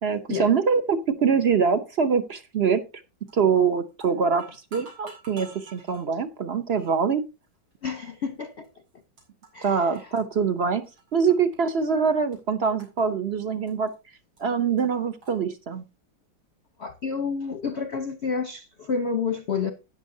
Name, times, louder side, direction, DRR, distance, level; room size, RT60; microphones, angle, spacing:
voice 1, 0.0-2.8 3.3-7.2 9.6-10.8 11.1-13.9 14.4-15.8, right 6 dB, 55° right, 0.7 m, -24 dB
sound 1, 3.3-3.6 3.9-6.0 6.8-7.0 7.7-7.8 8.6-8.7 8.9-9.7 9.9-11.6 11.8-12.4 12.8-14.0 14.4-14.5 14.8-14.9 15.2-15.4, right 4 dB, 85° right, 5.3 m, -48 dB
voice 2, 7.8-8.7 9.5-9.8 16.8-19.7, left 5 dB, 50° left, 0.9 m, -29 dB
12.5 x 9.6 x 2.7 m
omnidirectional pair, 2.2 m